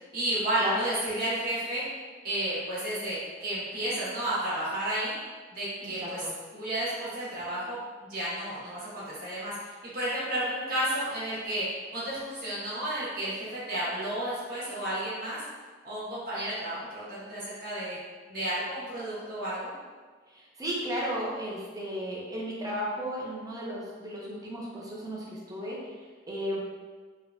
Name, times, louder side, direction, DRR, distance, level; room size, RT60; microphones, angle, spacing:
voice 1, 0.1-1.8 2.2-5.1 5.5-6.2 6.5-9.5 9.9-11.6 11.9-15.4 15.8-18.0 18.3-19.7, right 1 dB, 50° right, -10 dB, 1.2 m, -32 dB
voice 2, 5.8-6.3 20.3-25.8 26.3-26.6, equal, 20° right, -5 dB, 0.5 m, -34 dB
3.3 x 2.1 x 2.4 m, 1.4 s
head